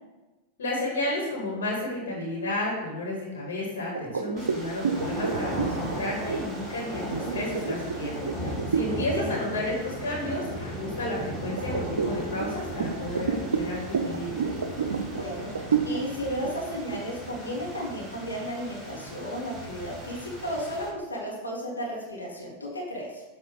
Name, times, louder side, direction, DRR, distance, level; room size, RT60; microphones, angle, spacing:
voice 1, 0.6-14.5, left 1 dB, 65° left, -4 dB, 1.9 m, -32 dB
sound 1, 4.0-9.1 9.5-9.8 10.2-11.0 11.6-18.3, right 5 dB, 70° right, 0.5 m, -30 dB
sound 2, 4.4-20.9, right 1 dB, 5° right, 1.5 m, -37 dB
voice 2, 8.8-9.4 15.1-23.2, equal, 80° left, -5 dB, 1.5 m, -34 dB
7.8 x 3.0 x 5.0 m, 1.1 s
figure-of-eight pair, 90°, 0 cm